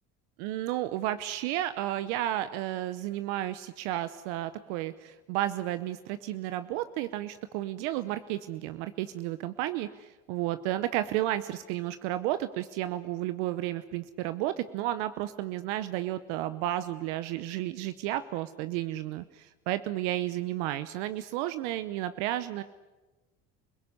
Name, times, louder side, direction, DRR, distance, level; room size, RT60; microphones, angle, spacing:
voice 1, 0.4-22.6, right 14 dB, 80° right, 12 dB, 0.9 m, -32 dB
26.0 x 17.5 x 9.8 m, 1.2 s
supercardioid pair, 80°, 34 cm